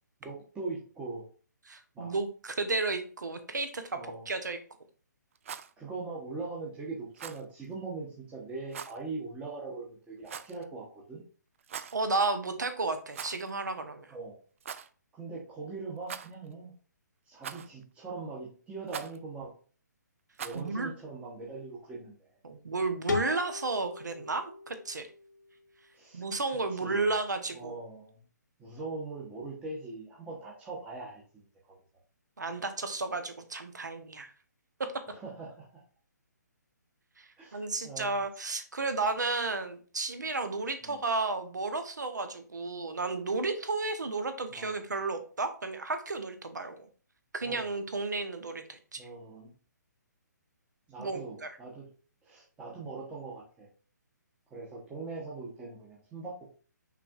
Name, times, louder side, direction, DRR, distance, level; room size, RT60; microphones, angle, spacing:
voice 1, 0.2-1.3 1.9-2.1 3.9-4.3 5.8-11.2 14.1-14.4 15.1-16.7 17.3-19.5 20.4-22.3 25.9-27.1 27.5-28.2 28.6-31.8 35.1-35.7 37.4-38.2 40.8-41.0 44.5-44.8 47.4-47.7 49.0-49.5 50.9-51.9 52.2-53.7 54.5-56.6, right 3 dB, 10° right, -4 dB, 0.9 m, -41 dB
voice 2, 1.7-4.0 4.3-4.6 11.9-14.1 20.5-20.9 22.4-25.1 26.1-27.7 32.4-34.3 37.2-46.9 47.3-49.0 51.0-51.5, right 3 dB, 70° right, 8 dB, 0.9 m, -33 dB
Rattle, 5.3-5.7 7.1-7.4 8.7-9.0 10.2-10.6 11.6-12.0 13.1-13.5 13.8-13.9 14.6-14.9 16.0-16.5 17.4-17.8 18.9-19.2 20.3-20.7, right 8 dB, 45° right, 0.3 m, -42 dB
sound 1, 23.1-25.9, left 3 dB, 80° left, 1.0 m, -37 dB
5.8 x 3.4 x 2.4 m, 0.39 s
figure-of-eight pair, 135°, 10 cm